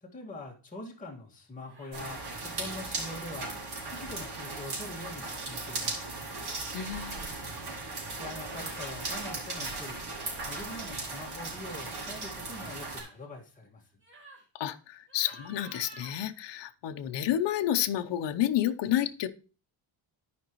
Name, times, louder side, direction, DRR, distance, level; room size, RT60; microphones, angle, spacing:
voice 1, 0.0-6.1 8.2-10.0 10.5-13.8, left 2 dB, 15° left, -2 dB, 1.9 m, -44 dB
sound 1, 1.6-2.3 3.9-4.1 5.4-5.9 6.7-7.2 8.3-8.9 12.8-13.2 14.0-14.4 15.1-16.2, right 2 dB, 25° right, 2.8 m, -51 dB
sound 2, 1.9-13.0, right 3 dB, 55° right, 3.5 m, -37 dB
voice 2, 6.7-7.3 14.5-19.3, left 11 dB, 65° left, 8 dB, 0.8 m, -30 dB
13.5 x 5.3 x 3.1 m, 0.35 s
cardioid pair, 125°, 46 cm